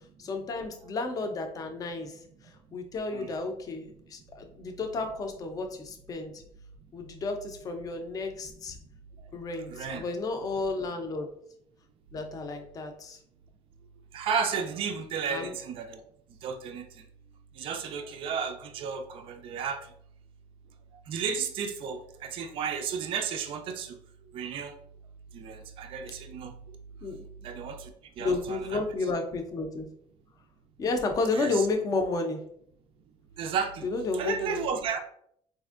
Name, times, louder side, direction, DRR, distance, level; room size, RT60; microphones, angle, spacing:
voice 1, 0.2-6.4 6.9-8.8 9.3-11.3 12.1-13.2 15.3-15.5 27.0-27.2 28.2-29.9 30.8-32.4 33.8-34.6, left 3 dB, 30° left, 5 dB, 0.5 m, -32 dB
voice 2, 9.7-10.0 14.1-16.0 16.4-17.1 17.5-19.9 21.1-24.0 24.3-24.8 25.3-26.8 27.4-28.8 31.3-31.7 33.4-33.9 34.1-35.0, right 6 dB, 45° right, 6 dB, 0.4 m, -33 dB
4.2 x 2.5 x 2.4 m, 0.68 s
cardioid pair, 165°, 13 cm